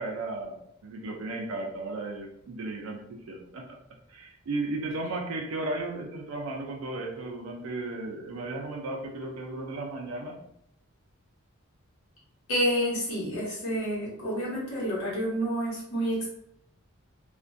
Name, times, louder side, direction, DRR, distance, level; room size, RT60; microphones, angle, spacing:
voice 1, 0.0-3.8 4.1-10.4, right 2 dB, 90° right, 1 dB, 0.4 m, -35 dB
voice 2, 12.5-16.3, equal, 85° left, -6 dB, 1.0 m, -29 dB
2.4 x 2.1 x 2.5 m, 0.74 s
head